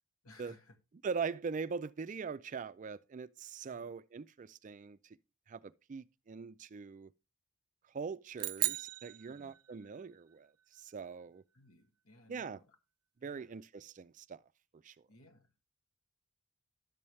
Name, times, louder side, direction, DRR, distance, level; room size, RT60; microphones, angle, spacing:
voice 1, 0.2-0.8 3.7-3.9 9.3-9.5 11.5-12.8 13.2-13.5 15.1-15.6, left 1 dB, 70° left, 1.7 m, -61 dB
voice 2, 1.0-5.2 5.5-7.1 7.9-11.4 12.3-12.6 13.2-14.4 14.8-15.0, right 5 dB, 35° right, 0.3 m, -42 dB
sound 1, 8.4-10.0, right 18 dB, 90° right, 0.5 m, -37 dB
11.0 x 7.1 x 3.2 m
head